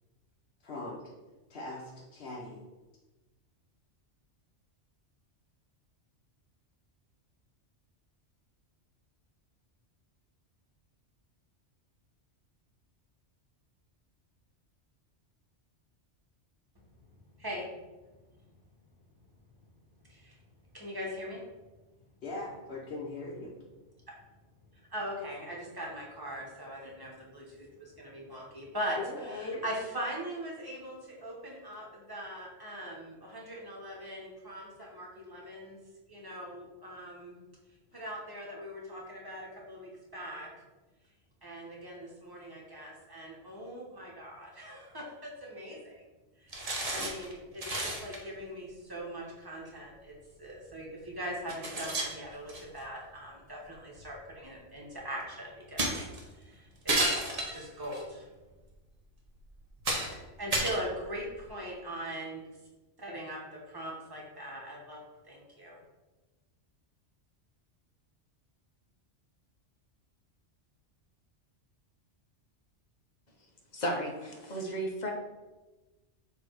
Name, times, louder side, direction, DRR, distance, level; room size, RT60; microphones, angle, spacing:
voice 1, 0.6-1.0 1.5-2.6 22.2-23.5 29.0-29.6, left 2 dB, 60° left, -5 dB, 1.1 m, -40 dB
voice 2, 17.4-17.7 20.1-20.4 20.7-21.4 24.9-35.8 36.1-37.4 37.9-40.5 41.4-46.0 46.4-56.0 56.3-58.3 60.3-62.4 63.0-63.4 63.7-65.0 65.3-65.8, equal, 20° right, -3 dB, 1.3 m, -41 dB
sound 1, 46.5-47.3 47.6-48.2 49.7-49.8 50.7-50.8 51.5-52.8 54.0-54.1 55.8-56.2 56.9-58.0 58.7-58.8 59.4-59.5 59.8-60.2 60.5-61.5, right 1 dB, 35° right, 1.0 m, -32 dB
voice 3, 73.7-75.1, equal, 40° left, 1 dB, 1.0 m, -34 dB
6.7 x 3.0 x 4.7 m, 1.1 s
omnidirectional pair, 1.2 m